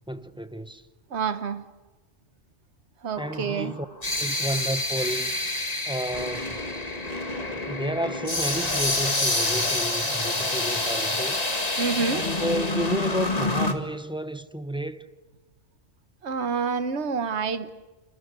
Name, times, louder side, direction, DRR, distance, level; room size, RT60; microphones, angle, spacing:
voice 1, 0.1-0.8 3.2-3.9 4.2-5.3 5.9-6.6 7.5-11.4 12.1-15.1, right 1 dB, 5° right, 0.8 m, -31 dB
voice 2, 1.1-1.6 3.0-3.7 11.8-12.2 16.2-17.7, right 5 dB, 60° right, 1.5 m, -28 dB
sound 1, 3.2-13.7, left 2 dB, 30° left, 2.3 m, -27 dB
28.0 x 28.0 x 6.8 m
omnidirectional pair, 1.3 m